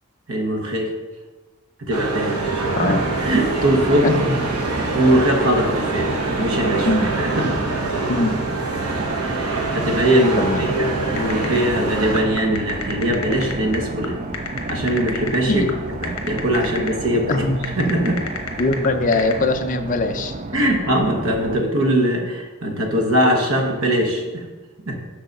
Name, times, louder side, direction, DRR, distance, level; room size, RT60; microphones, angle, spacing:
voice 1, 0.3-0.9 1.8-2.9 3.2-4.1 4.7-6.9 7.2-7.5 9.2-14.2 14.7-15.7 16.0-17.3 17.8-18.2 20.5-24.4 24.9-25.0, right 1 dB, 65° right, 2 dB, 1.1 m, -21 dB
Night Distant Crowd Arabic Music pubs and clubs, 1.9-12.2, right 3 dB, 85° right, 1.0 m, -25 dB
sound 1, 2.3-21.6, right 2 dB, 30° right, 0.4 m, -31 dB
voice 2, 2.8-3.1 4.0-4.5 6.8-7.2 8.1-8.4 10.4-10.6 15.5-15.7 17.3-17.6 18.6-20.6, left 2 dB, 35° left, 7 dB, 0.5 m, -21 dB
sound 2, 11.2-19.3, left 5 dB, 70° left, 1.0 m, -31 dB
6.6 x 4.0 x 6.4 m, 1.3 s
head